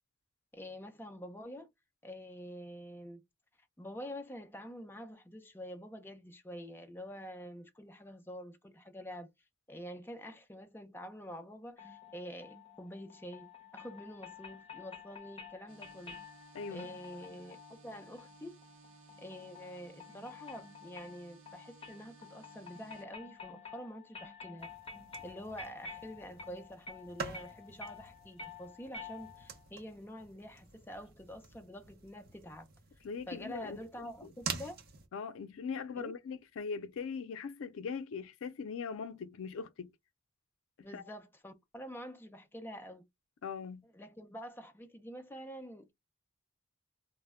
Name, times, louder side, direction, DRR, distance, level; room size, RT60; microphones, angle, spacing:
voice 1, 0.5-1.7 2.0-3.2 3.8-9.3 9.7-16.2 16.7-18.6 19.2-24.7 25.2-32.7 33.3-34.8 36.0-36.1 40.8-43.0 43.8-45.9, equal, 10° left, 0.4 m, -47 dB
sound 1, 11.8-29.6, left 5 dB, 30° left, 0.9 m, -51 dB
sound 2, 15.7-23.1, right 5 dB, 85° right, 0.7 m, -59 dB
voice 2, 16.5-16.9 33.0-34.1 35.1-39.9 40.9-41.0 43.4-43.8, left 5 dB, 90° left, 0.4 m, -40 dB
sound 3, 24.6-35.1, right 5 dB, 50° right, 0.6 m, -47 dB
2.1 x 2.0 x 3.4 m
head